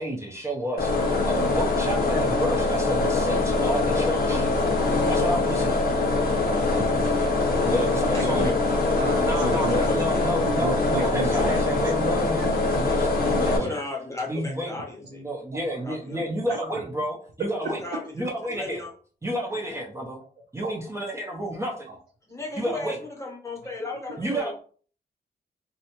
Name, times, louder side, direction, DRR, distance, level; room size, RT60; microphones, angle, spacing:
voice 1, 0.0-4.5 5.1-5.8 7.6-8.5 9.2-13.8 14.3-17.8 18.1-18.8 19.2-20.2 20.5-22.0 22.6-23.0 24.2-24.5, equal, 15° right, -1 dB, 0.5 m, -30 dB
sound 1, 0.8-13.6, left 3 dB, 70° left, 0.7 m, -23 dB
voice 2, 6.5-7.7 8.1-8.5 9.0-10.1 10.4-12.1 12.4-12.6 13.3-13.7 20.6-20.7 21.9-22.0, right 4 dB, 80° right, 0 dB, 0.5 m, -34 dB
voice 3, 8.1-8.5 9.8-10.0 13.6-15.2 15.8-16.2 17.8-18.1 18.5-18.9 22.3-24.5, left 3 dB, 15° left, -1 dB, 0.8 m, -34 dB
2.7 x 2.1 x 2.8 m, 0.43 s
wide cardioid pair, 145°, 17 cm